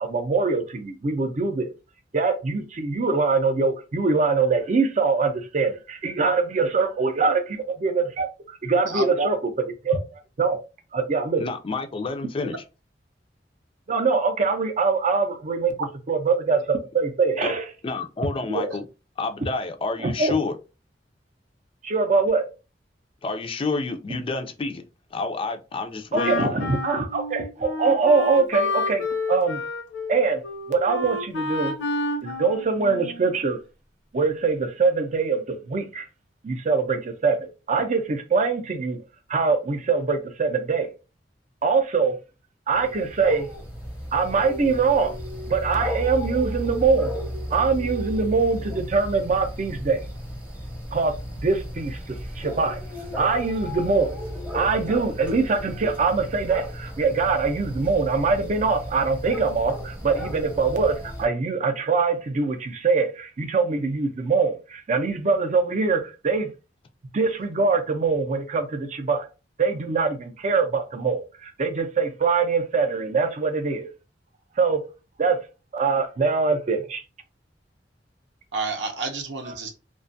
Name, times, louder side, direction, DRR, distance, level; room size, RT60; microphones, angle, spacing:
voice 1, 0.0-1.7 2.1-7.4 7.8-8.3 8.6-9.4 9.8-10.1 10.4-10.6 10.9-11.4 13.9-15.7 16.1-17.6 20.0-20.3 21.8-22.5 26.1-29.6 30.1-30.4 30.7-31.7 32.2-33.6 34.1-36.1 36.4-39.0 39.3-40.9 41.6-42.2 42.7-43.5 44.1-45.2 45.5-47.2 47.5-50.0 50.9-51.1 51.4-52.8 53.2-54.2 54.5-66.5 67.1-69.3 69.6-73.9 74.6-74.8 75.2-75.4 75.7-77.0, right 4 dB, 45° right, 0.5 m, -23 dB
voice 2, 8.9-9.3 18.5-18.8 78.5-79.7, right 3 dB, 80° right, 0.7 m, -27 dB
voice 3, 11.4-12.5 17.4-17.5 17.8-18.8 19.2-20.6 23.2-24.8 25.1-26.6, left 3 dB, 30° left, 0.3 m, -29 dB
Wind instrument woodwind instrument, 26.1-33.3, left 2 dB, 85° left, 0.6 m, -29 dB
sound 1, 42.7-61.3, equal, 10° right, 0.8 m, -34 dB
2.4 x 2.2 x 2.6 m
head